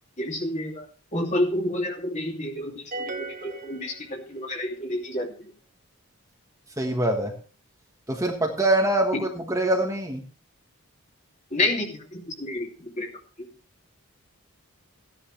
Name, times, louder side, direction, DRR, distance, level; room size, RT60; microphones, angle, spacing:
voice 1, 0.2-0.9 1.1-5.5 11.5-13.1 13.4-13.5, left 1 dB, 30° left, 1 dB, 2.7 m, -29 dB
sound 1, 2.9-4.6, right 2 dB, 35° right, 1.0 m, -37 dB
voice 2, 6.8-7.3 8.1-10.2, right 1 dB, 15° right, 1 dB, 1.4 m, -24 dB
15.0 x 10.0 x 3.2 m, 0.39 s
head